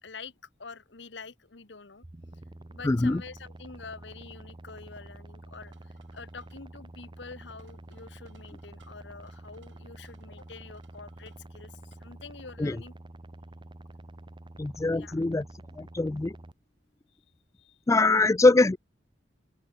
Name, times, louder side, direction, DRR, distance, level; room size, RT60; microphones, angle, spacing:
voice 1, 0.0-2.0 2.3-2.4 2.7-12.9 15.0-15.2 17.1-17.2 17.5-17.8, left 4 dB, 70° left, 1.3 m, -47 dB
sound 1, 2.0-16.5, right 1 dB, 25° right, 0.8 m, -48 dB
voice 2, 2.8-3.2 12.6-12.8 14.6-15.4 15.8-16.4 17.9-18.8, left 2 dB, 15° left, 0.4 m, -23 dB
sound 2, 5.7-12.1, right 5 dB, 85° right, 7.7 m, -68 dB
open air
head